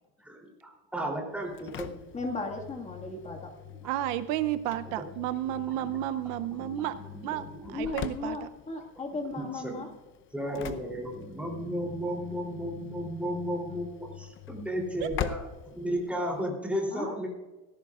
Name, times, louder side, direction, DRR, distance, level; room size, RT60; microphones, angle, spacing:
voice 1, 0.2-1.9 3.2-3.4 3.7-3.8 4.8-5.1 5.8-7.9 9.3-9.9 10.3-15.4 15.7-17.3, equal, 5° right, -1 dB, 3.1 m, -34 dB
Engine / Slam, 1.3-16.5, left 9 dB, 40° left, 0.7 m, -43 dB
voice 2, 2.1-3.5 7.7-9.9 16.9-17.1, left 3 dB, 20° left, 2 dB, 1.8 m, -36 dB
voice 3, 3.8-7.0 7.2-7.4 7.7-8.5, right 13 dB, 75° right, 12 dB, 0.7 m, -32 dB
18.0 x 15.0 x 2.4 m, 1.2 s
cardioid pair, 145°, 32 cm